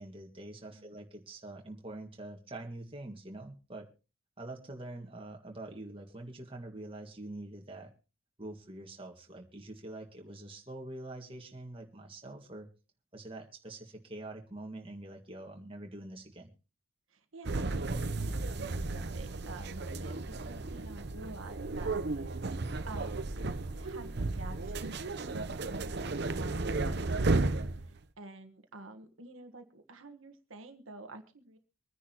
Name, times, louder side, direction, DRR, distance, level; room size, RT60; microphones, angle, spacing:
voice 1, 0.0-3.9 4.4-7.9 8.4-12.7 13.1-16.5, right 2 dB, 25° right, 1 dB, 1.9 m, -45 dB
voice 2, 0.6-1.0 17.1-18.6 18.9-22.4 22.9-24.9 25.3-26.6 27.0-31.6, right 2 dB, 80° right, 6 dB, 1.4 m, -50 dB
sound 1, 17.4-28.0, right 3 dB, 55° right, 0.8 m, -34 dB
25.0 x 10.0 x 3.0 m, 0.34 s
head